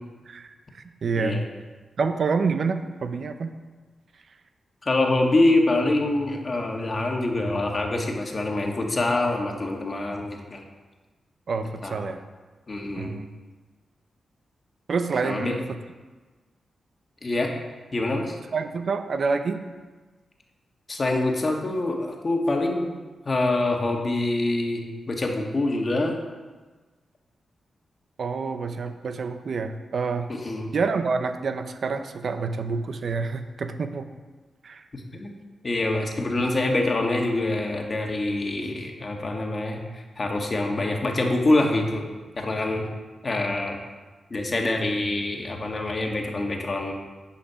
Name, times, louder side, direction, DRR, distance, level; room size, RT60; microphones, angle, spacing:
voice 1, 0.3-1.4 2.0-3.5 4.3-4.4 11.5-12.2 13.0-13.3 14.9-15.6 18.5-19.6 28.2-30.3 30.7-34.1 34.6-34.9, right 4 dB, 65° right, 8 dB, 0.7 m, -27 dB
voice 2, 4.8-10.6 11.8-12.1 12.7-13.2 15.2-15.6 17.2-17.5 17.9-18.3 20.9-23.0 23.2-26.2 30.3-30.7 34.9-35.3 35.6-42.0 42.3-42.9 43.2-43.8 44.3-46.9, left 2 dB, 40° left, 2 dB, 1.5 m, -25 dB
9.9 x 5.7 x 5.7 m, 1.3 s
cardioid pair, 75°, 0 cm